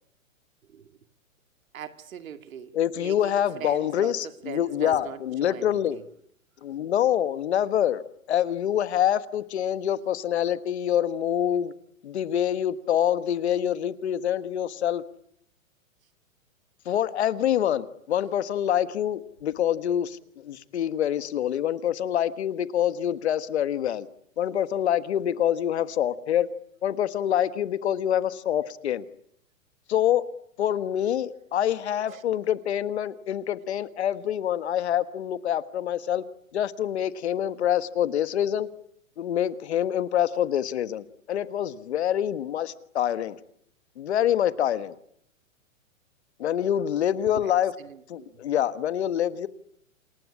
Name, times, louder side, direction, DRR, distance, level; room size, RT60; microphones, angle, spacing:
voice 1, 1.7-6.0 32.1-32.2 47.3-47.5 47.8-48.4, right 9 dB, 80° right, 2.4 m, -41 dB
voice 2, 2.7-6.0 6.6-8.0 8.3-11.7 12.0-15.0 16.8-24.1 24.4-26.5 26.8-29.1 29.9-30.2 30.6-36.2 36.5-38.7 39.2-43.4 44.0-44.9 46.4-47.7 48.1-49.5, left 10 dB, 55° left, 1.4 m, -26 dB
28.0 x 20.0 x 9.8 m
hypercardioid pair, 180°, 40 cm